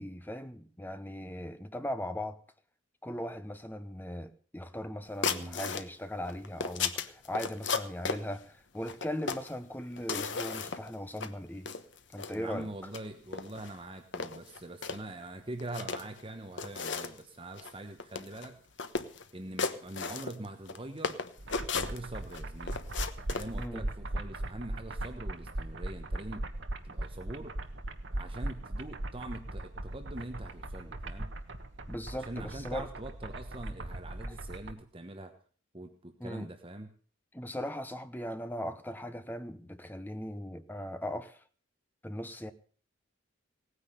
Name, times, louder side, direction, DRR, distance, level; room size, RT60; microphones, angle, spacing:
voice 1, 0.0-2.4 3.0-11.7 12.1-12.7 23.6-23.9 31.9-32.9 36.2-36.5 37.3-41.4 42.0-42.5, left 1 dB, 10° left, 0.9 m, -39 dB
sound 1, 5.2-5.9 6.3-8.2 8.9-9.5 10.0-10.9 11.2-11.3 11.7-12.3 12.8-13.0 13.3-13.7 14.1-15.0 15.6-16.2 16.6-17.2 17.6-17.7 18.0-18.5 18.8-19.2 19.6-20.8 21.0-22.4 22.7-23.5, left 5 dB, 65° left, 1.1 m, -35 dB
voice 2, 5.3-5.6 12.3-18.6 19.3-21.2 21.7-22.8 23.3-26.5 26.8-27.6 28.1-31.3 32.1-35.3 35.7-36.9, right 1 dB, 25° right, 1.1 m, -43 dB
sound 2, 21.4-34.7, right 1 dB, 65° right, 1.4 m, -39 dB
17.5 x 9.7 x 6.8 m
head